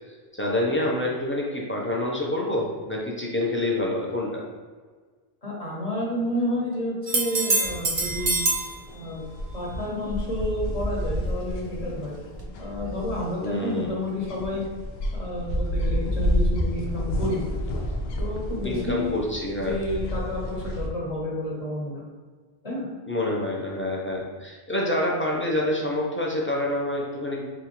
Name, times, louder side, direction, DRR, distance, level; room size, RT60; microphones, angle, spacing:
voice 1, 0.3-4.4 13.4-14.0 18.6-19.8 23.1-27.5, left 1 dB, 20° left, -3 dB, 0.4 m, -27 dB
voice 2, 5.4-8.4 8.9-9.3 9.5-12.2 12.6-14.6 15.1-17.4 18.2-19.2 19.6-22.0 22.6-22.9, left 1 dB, 40° left, -4 dB, 1.0 m, -30 dB
sound 1, 7.1-8.7 12.4-12.5, right 3 dB, 45° right, 0.5 m, -24 dB
sound 2, 7.6-20.9, equal, 80° left, 0.8 m, -30 dB
3.6 x 3.1 x 3.0 m, 1.5 s
omnidirectional pair, 1.0 m